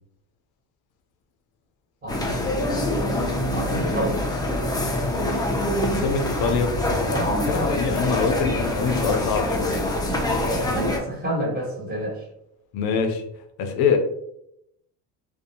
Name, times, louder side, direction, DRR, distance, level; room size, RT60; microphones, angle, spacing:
voice 1, 2.0-3.1 3.5-4.2 7.1-7.7 10.1-12.2, right 1 dB, 20° right, -4 dB, 1.3 m, -29 dB
sound 1, 2.1-11.0, left 1 dB, 10° left, 0.4 m, -25 dB
voice 2, 5.9-6.7 7.5-9.8 12.7-13.2 13.6-14.0, left 5 dB, 65° left, 5 dB, 0.5 m, -24 dB
2.5 x 2.2 x 2.7 m, 0.78 s
supercardioid pair, 95°, 40 cm